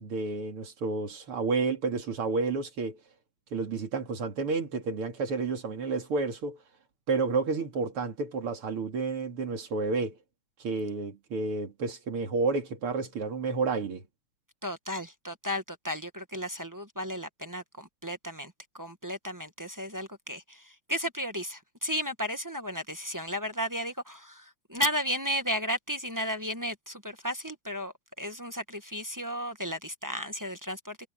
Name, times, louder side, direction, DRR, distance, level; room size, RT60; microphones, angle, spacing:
voice 1, 0.0-3.0 3.5-6.6 7.1-10.2 10.6-14.0, right 4 dB, 90° right, 3.5 m, -30 dB
voice 2, 14.6-31.1, equal, 15° right, 0.8 m, -34 dB
omnidirectional pair, 2.4 m